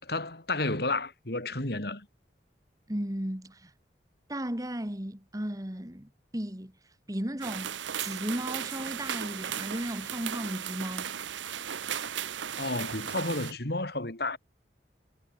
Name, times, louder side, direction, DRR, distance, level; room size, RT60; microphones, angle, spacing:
voice 1, 0.0-2.1 12.6-14.4, left 2 dB, 60° left, 3.4 m, -31 dB
voice 2, 2.9-3.7 4.3-6.7 7.1-11.1, right 1 dB, 20° right, 2.0 m, -35 dB
sound 1, 7.4-13.5, right 9 dB, 85° right, 0.8 m, -36 dB
head